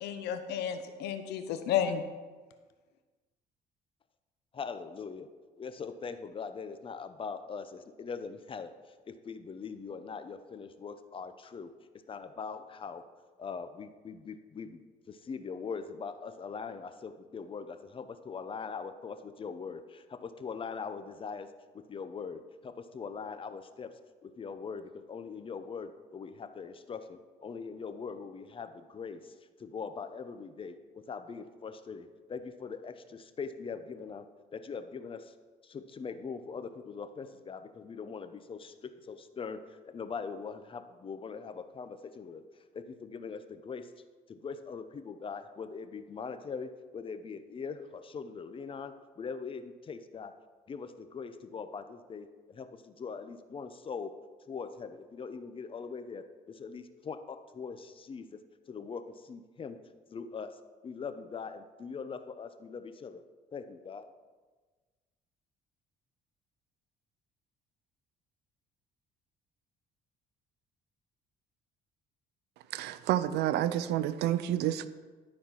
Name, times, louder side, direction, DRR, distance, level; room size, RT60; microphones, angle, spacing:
voice 1, 0.0-2.0, left 9 dB, 80° left, 9 dB, 0.9 m, -32 dB
voice 2, 4.5-5.3 5.6-8.7 9.1-11.7 12.1-13.0 13.4-14.8 15.1-21.5 21.7-23.9 24.2-30.8 31.1-34.3 34.5-35.3 35.6-42.4 42.7-43.9 44.3-50.3 50.7-54.1 54.5-58.3 58.7-59.8 60.1-60.6 60.8-63.2 63.5-64.1, left 5 dB, 30° left, 10 dB, 0.7 m, -41 dB
voice 3, 72.7-74.9, right 12 dB, 80° right, 14 dB, 0.5 m, -29 dB
12.0 x 4.3 x 5.8 m, 1.4 s
cardioid pair, 110°, 17 cm